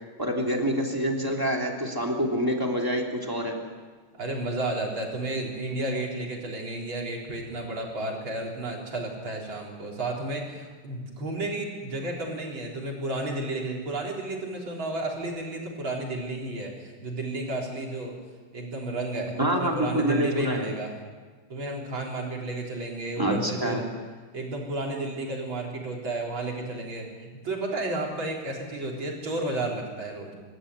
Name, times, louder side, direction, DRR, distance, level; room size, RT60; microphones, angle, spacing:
voice 1, 0.2-3.6 19.4-20.7 23.2-23.8, equal, 10° right, 0 dB, 2.9 m, -26 dB
voice 2, 4.2-18.1 18.5-20.9 21.5-23.9 24.3-30.3, right 2 dB, 65° right, -1 dB, 4.6 m, -32 dB
25.5 x 13.0 x 9.4 m, 1.4 s
omnidirectional pair, 2.4 m